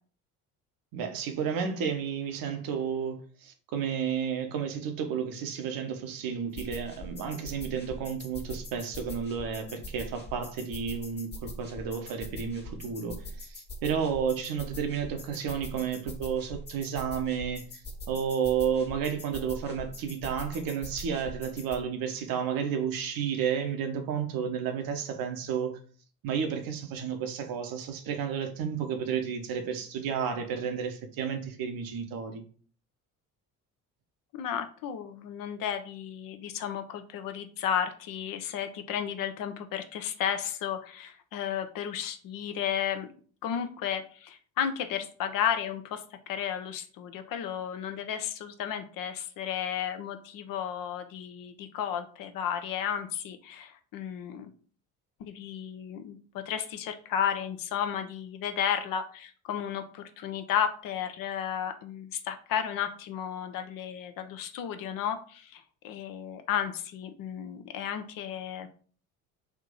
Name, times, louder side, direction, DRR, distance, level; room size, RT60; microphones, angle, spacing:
voice 1, 0.9-25.8 26.2-32.4, right 7 dB, 50° right, 0.8 m, -32 dB
sound 1, 6.6-21.8, left 1 dB, 25° left, 1.1 m, -42 dB
voice 2, 34.3-43.1 43.4-54.5 55.2-68.7, left 9 dB, 50° left, 0.6 m, -33 dB
3.5 x 2.7 x 3.7 m
hypercardioid pair, 55°, 43 cm